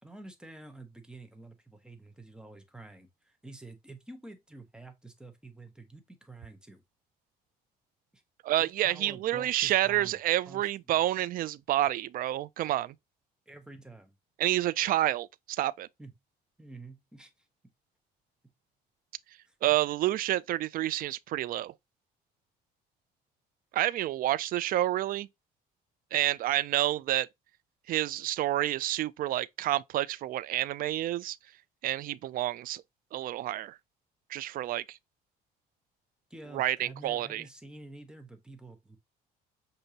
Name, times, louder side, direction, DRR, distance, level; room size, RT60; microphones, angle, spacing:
voice 1, 0.0-6.8 8.1-8.2 8.6-10.2 10.5-10.7 10.9-11.1 13.5-14.1 16.0-16.1 16.6-17.5 19.5-19.6 36.3-39.0, right 2 dB, 5° right, 1.1 m, -49 dB
voice 2, 8.4-12.9 14.4-15.9 19.6-21.7 23.7-25.3 26.1-27.3 27.9-31.4 31.8-32.8 33.1-33.8 34.3-35.0 36.5-37.4, right 14 dB, 55° right, 0.4 m, -29 dB
6.6 x 2.6 x 2.9 m
cardioid pair, 110°, 17 cm